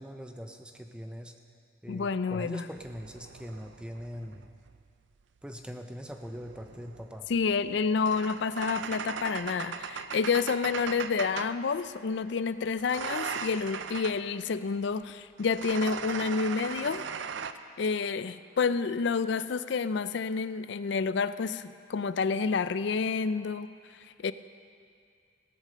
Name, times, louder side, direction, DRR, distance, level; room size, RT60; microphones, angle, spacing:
voice 1, 0.0-1.3 1.8-4.5 5.4-7.3, equal, 5° right, 5 dB, 0.5 m, -41 dB
voice 2, 1.9-2.6 7.3-17.0 17.8-23.7 24.2-24.3, left 5 dB, 60° left, 14 dB, 0.4 m, -29 dB
sound 1, 2.8-4.9 6.1-11.6 12.8-14.3 15.4-17.5, right 6 dB, 65° right, 0.5 m, -39 dB
17.5 x 8.1 x 6.6 m, 2.4 s
head